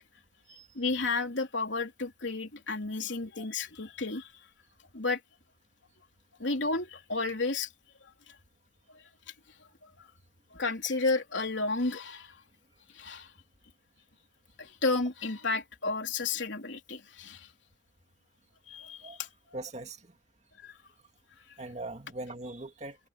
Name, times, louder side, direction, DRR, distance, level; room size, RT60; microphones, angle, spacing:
voice 1, 0.8-4.3 4.9-5.2 6.4-7.7 8.3-8.4 8.9-9.0 9.8-10.1 10.5-12.4 12.9-13.3 14.6-17.5 18.7-19.6 20.6-20.8, left 3 dB, 80° left, 3.4 m, -32 dB
voice 2, 19.5-20.0 21.6-23.0, right 2 dB, 35° right, 2.3 m, -40 dB
head